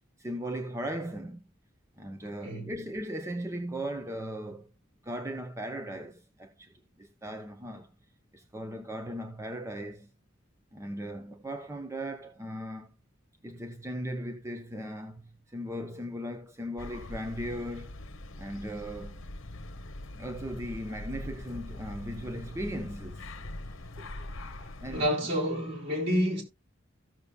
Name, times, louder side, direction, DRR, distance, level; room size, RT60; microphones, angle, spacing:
voice 1, 0.2-1.4 2.0-4.7 5.0-7.9 8.3-10.1 10.7-13.0 13.4-17.9 18.4-19.2 20.1-23.3 24.8-25.1, equal, 15° right, 0.7 m, -38 dB
voice 2, 2.4-2.7 24.0-24.1 24.9-26.4, equal, 60° right, 3.7 m, -29 dB
sound 1, 16.8-25.1, left 1 dB, 70° left, 0.9 m, -42 dB
15.5 x 6.8 x 2.3 m
head